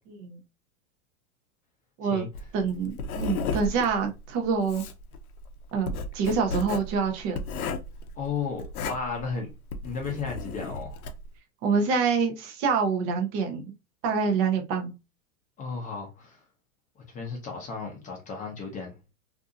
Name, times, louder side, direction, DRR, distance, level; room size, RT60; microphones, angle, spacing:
voice 1, 0.1-0.4 2.0-2.2 2.5-4.8 5.7-7.4 11.6-13.7 14.0-14.9, right 5 dB, 30° right, 0.5 m, -26 dB
Writing, 2.3-11.3, left 3 dB, 80° left, 0.6 m, -34 dB
voice 2, 8.2-9.5 9.8-11.0 15.6-16.4 17.1-18.9, left 5 dB, 20° left, 0.6 m, -34 dB
2.6 x 2.5 x 2.4 m
hypercardioid pair, 120°, 43 cm